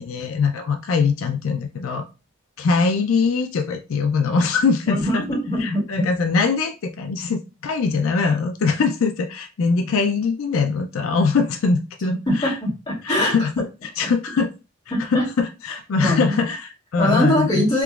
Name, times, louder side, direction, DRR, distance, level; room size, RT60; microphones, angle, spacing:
voice 1, 0.0-2.1 2.6-5.2 5.6-12.5 13.0-14.5 15.1-17.7, left 4 dB, 80° left, 5 dB, 0.4 m, -22 dB
voice 2, 4.9-6.1 12.3-13.3 14.9-15.3 16.0-16.3 17.0-17.8, left 1 dB, 20° left, -6 dB, 1.9 m, -22 dB
3.5 x 2.9 x 2.3 m, 0.30 s
head